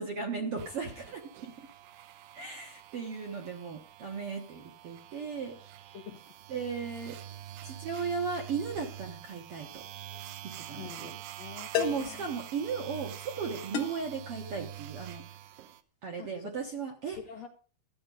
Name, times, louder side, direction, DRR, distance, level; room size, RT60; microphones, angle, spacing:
voice 1, 0.0-1.7 2.3-5.5 6.5-7.2 7.6-9.8 10.7-11.1 11.8-15.2 16.0-17.2, right 5 dB, 60° right, 2 dB, 1.6 m, -36 dB
sound 1, 0.6-15.8, right 12 dB, 75° right, 2.3 m, -46 dB
sound 2, 10.1-10.3 11.7-12.2 13.7-14.1, left 10 dB, 65° left, 2.4 m, -33 dB
voice 2, 10.8-12.3 16.2-16.5 17.2-17.5, left 8 dB, 80° left, 5 dB, 1.5 m, -46 dB
13.0 x 8.8 x 5.4 m, 0.40 s
omnidirectional pair, 4.5 m